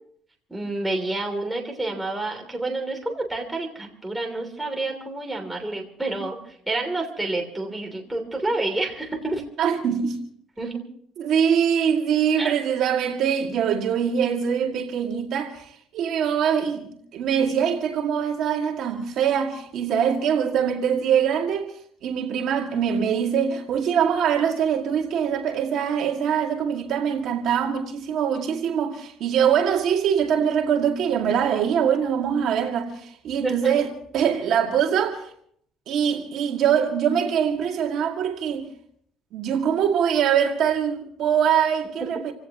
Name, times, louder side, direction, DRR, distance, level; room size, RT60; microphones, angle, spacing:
voice 1, 0.5-9.4 10.6-10.8 12.4-12.5 33.4-33.8, right 2 dB, 5° right, 3.1 m, -29 dB
voice 2, 9.6-10.2 11.2-21.7 22.0-35.3 35.9-38.7 39.3-42.3, right 8 dB, 55° right, 2.2 m, -23 dB
28.0 x 17.0 x 3.0 m
cardioid pair, 155°, 0 cm